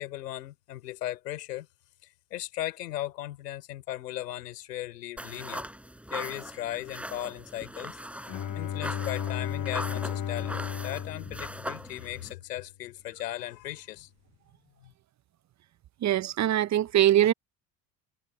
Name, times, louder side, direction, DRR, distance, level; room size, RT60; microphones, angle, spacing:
voice 1, 0.0-1.7 2.3-5.7 6.1-8.0 8.5-14.1 14.8-14.9, left 14 dB, 80° left, 3.8 m, -37 dB
sound 1, 5.2-12.3, equal, 5° right, 6.3 m, -40 dB
Bowed string instrument, 8.3-12.2, left 10 dB, 40° left, 2.4 m, -34 dB
voice 2, 16.0-17.3, right 12 dB, 35° right, 0.8 m, -22 dB
hypercardioid pair, 70°, 47 cm